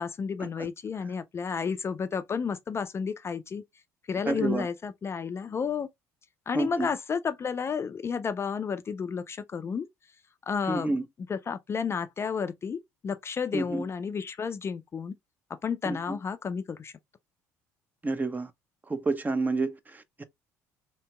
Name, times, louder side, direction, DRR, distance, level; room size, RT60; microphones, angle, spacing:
voice 1, 0.0-3.6 4.1-5.9 6.5-9.9 10.5-11.0 11.3-15.1 15.5-16.9, left 6 dB, 30° left, 0.3 m, -31 dB
voice 2, 4.3-4.7 6.5-6.9 10.7-11.0 13.5-13.9 15.8-16.2 18.0-18.5 18.9-20.2, right 3 dB, 20° right, 0.5 m, -29 dB
2.8 x 2.8 x 2.2 m
hypercardioid pair, 65°, 8 cm